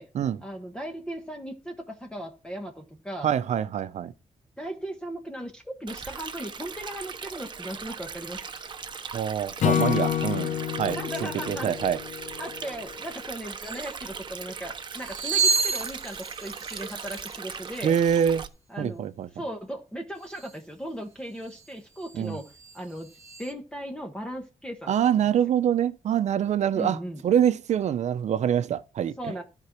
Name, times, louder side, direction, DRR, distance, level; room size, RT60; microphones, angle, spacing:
voice 1, 0.4-3.3 4.6-8.4 10.9-11.7 12.4-17.9 18.7-19.0 19.3-23.1 23.4-25.3 26.7-27.2 29.2-29.4, equal, 5° left, 1.3 m, -37 dB
voice 2, 3.2-4.1 9.1-12.0 17.8-18.4 18.8-19.3 22.1-22.4 24.9-29.2, right 9 dB, 75° right, 0.8 m, -25 dB
Stream, 5.9-18.5, right 5 dB, 40° right, 1.0 m, -39 dB
Acoustic guitar / Strum, 9.6-12.9, left 10 dB, 90° left, 0.8 m, -28 dB
sound 1, 13.1-13.2 13.5-14.0 14.9-18.0 20.2-20.6 21.4-21.7 22.0-23.5, right 4 dB, 25° right, 2.5 m, -31 dB
13.0 x 4.7 x 6.0 m
cardioid pair, 115°, 12 cm